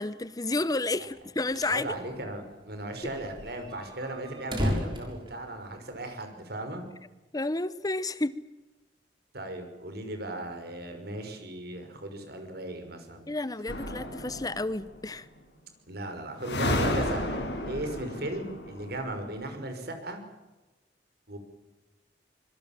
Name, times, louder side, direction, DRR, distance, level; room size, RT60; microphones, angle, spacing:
voice 1, 0.0-1.9 7.3-8.3 13.3-15.3, left 2 dB, 20° left, 16 dB, 0.8 m, -31 dB
sound 1, 1.2-1.8 2.1-2.2 2.5-2.6 3.0-6.0, equal, 30° right, 6.6 m, -34 dB
voice 2, 1.7-6.8 9.3-13.2 15.9-20.2 21.3-21.4, right 1 dB, 60° right, 6 dB, 5.7 m, -37 dB
sound 2, 13.7-14.8 16.4-19.3, left 1 dB, 90° left, 6.1 m, -32 dB
25.5 x 22.0 x 7.5 m, 1.1 s
head